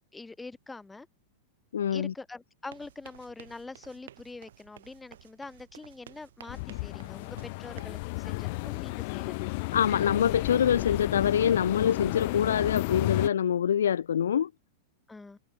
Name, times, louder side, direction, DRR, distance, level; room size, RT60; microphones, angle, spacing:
voice 1, 0.1-1.1 1.9-9.4 15.1-15.4, left 3 dB, 10° left, 3.8 m, -44 dB
voice 2, 1.7-2.1 9.7-14.5, left 9 dB, 70° left, 0.3 m, -25 dB
sound 1, 2.6-8.0, right 11 dB, 65° right, 4.1 m, -53 dB
sound 2, 6.5-13.3, left 26 dB, 50° left, 1.2 m, -32 dB
figure-of-eight pair, 95°, 0 cm